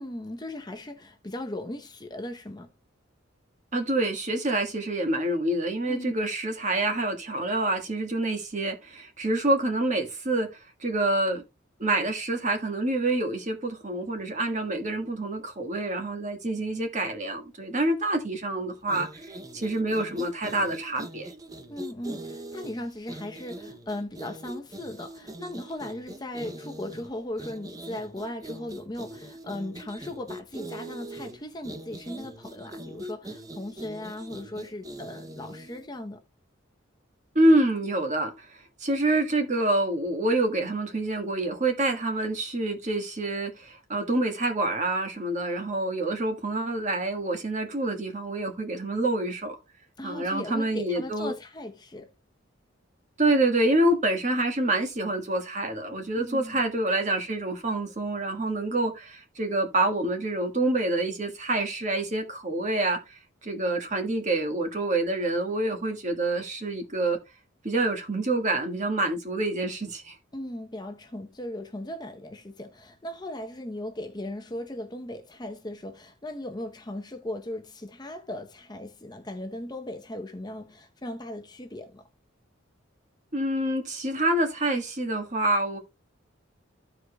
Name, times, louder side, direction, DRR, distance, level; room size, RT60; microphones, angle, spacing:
voice 1, 0.0-2.7 5.9-6.1 21.7-36.2 50.0-52.1 56.1-56.6 70.3-82.0, left 1 dB, 20° left, 0.8 m, -37 dB
voice 2, 3.7-10.5 10.8-11.4 11.8-21.3 37.3-49.6 50.0-51.3 53.2-67.2 67.6-70.2 83.3-85.8, right 2 dB, 35° right, 1.4 m, -27 dB
sound 1, 18.8-35.9, right 1 dB, 20° right, 0.6 m, -42 dB
14.5 x 4.9 x 2.2 m
head